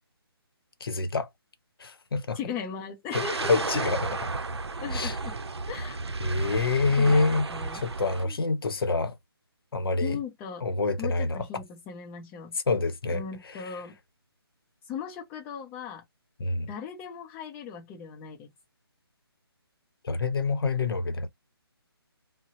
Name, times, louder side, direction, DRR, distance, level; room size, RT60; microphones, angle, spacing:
voice 1, 0.8-1.3 1.8-2.4 3.1-3.2 3.5-4.0 4.4-4.5 4.9-5.1 6.2-7.5 7.7-9.1 9.7-10.2 10.6-11.4 12.7-13.2 16.4-16.7 20.0-21.3, left 3 dB, 65° left, 0.8 m, -26 dB
voice 2, 2.3-4.0 4.8-5.4 5.7-6.0 7.0-7.8 8.2-8.4 10.0-10.6 11.0-12.6 13.1-14.0 14.9-16.0 16.7-18.5, left 7 dB, 10° left, 0.5 m, -38 dB
sound 1, 3.1-8.2, right 3 dB, 90° right, 0.5 m, -32 dB
2.8 x 2.0 x 3.7 m
figure-of-eight pair, 155°, 13 cm